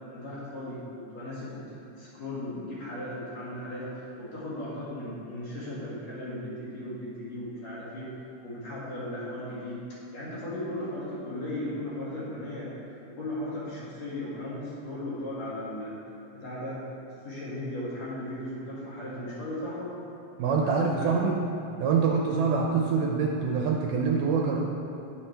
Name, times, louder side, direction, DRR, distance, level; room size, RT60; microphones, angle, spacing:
voice 1, 0.1-8.1 8.4-9.8 10.1-16.0 16.3-16.8 17.2-19.9 20.6-21.4, left 1 dB, 50° left, -8 dB, 3.2 m, -36 dB
voice 2, 20.4-21.4 21.8-24.6, right 5 dB, 75° right, 0 dB, 2.0 m, -25 dB
9.7 x 9.6 x 3.4 m, 2.7 s
omnidirectional pair, 4.1 m